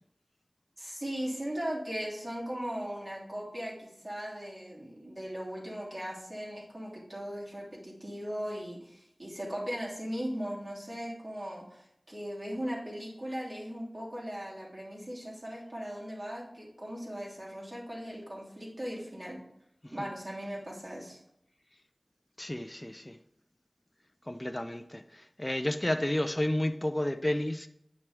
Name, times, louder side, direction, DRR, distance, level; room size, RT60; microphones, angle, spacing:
voice 1, 0.8-19.4 19.9-21.2, equal, 40° right, -5 dB, 2.9 m, -38 dB
voice 2, 22.4-23.2 24.3-27.7, left 1 dB, 20° left, 7 dB, 0.5 m, -31 dB
9.3 x 5.8 x 3.5 m, 0.77 s
wide cardioid pair, 55°, 0 cm